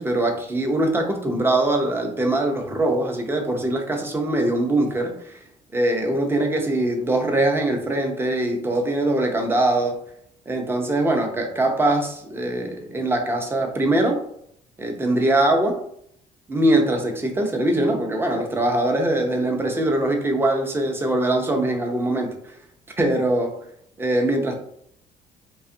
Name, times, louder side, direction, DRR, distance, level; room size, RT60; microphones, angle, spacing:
voice 1, 0.0-5.4 5.7-10.0 10.5-14.2 14.8-15.8 16.5-22.6 23.0-23.6 24.0-24.6, right 1 dB, 15° right, 2 dB, 0.5 m, -22 dB
2.5 x 2.3 x 2.6 m, 0.69 s
cardioid pair, 110°, 17 cm